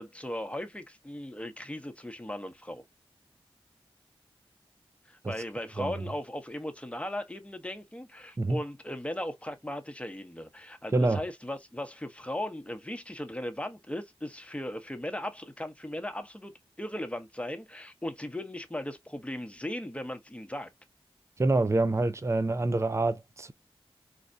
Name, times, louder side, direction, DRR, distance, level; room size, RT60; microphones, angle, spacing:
voice 1, 0.0-2.8 5.1-16.5 16.8-20.7, left 1 dB, 10° left, 0.9 m, -37 dB
voice 2, 21.4-23.5, right 2 dB, 30° right, 0.5 m, -26 dB
4.4 x 2.3 x 2.6 m
cardioid pair, 40°, 10 cm